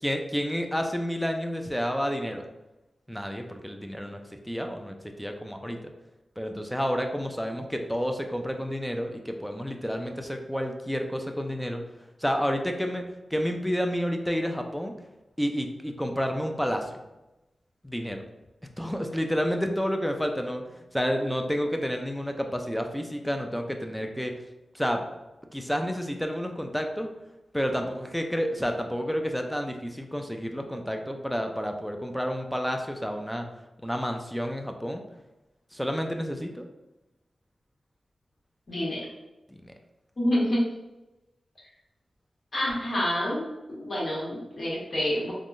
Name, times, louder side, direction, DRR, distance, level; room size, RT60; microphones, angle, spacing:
voice 1, 0.0-2.4 3.1-5.9 6.4-11.8 12.2-13.0 13.3-14.9 15.4-17.0 17.8-18.2 18.8-24.3 24.7-25.1 25.5-27.1 27.5-33.5 33.8-35.0 35.7-36.7 39.5-39.7, equal, 5° left, 4 dB, 0.4 m, -30 dB
voice 2, 38.7-39.0 40.2-40.6 42.5-43.4 43.8-45.3, equal, 55° left, -7 dB, 1.4 m, -27 dB
3.5 x 2.2 x 2.5 m, 1.0 s
cardioid pair, 55°, 0 cm